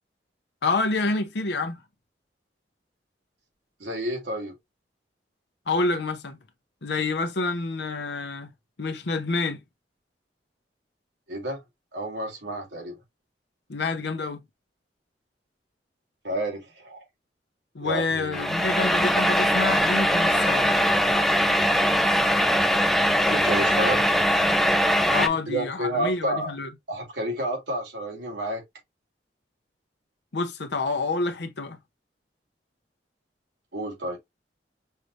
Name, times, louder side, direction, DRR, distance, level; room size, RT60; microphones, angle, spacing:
voice 1, 0.6-1.8 5.7-6.4 6.8-8.5 8.8-9.6 13.7-14.4 17.7-20.7 25.1-26.7 30.3-31.8, left 3 dB, 75° left, 0.8 m, -28 dB
voice 2, 3.8-4.5 11.3-11.6 11.9-13.0 16.2-17.0 17.8-18.5 23.3-24.0 25.1-26.5 26.9-28.6 33.7-34.2, right 1 dB, 75° right, 2.8 m, -30 dB
sound 1, 18.3-25.3, equal, ahead, 0.5 m, -21 dB
5.6 x 3.2 x 2.5 m
head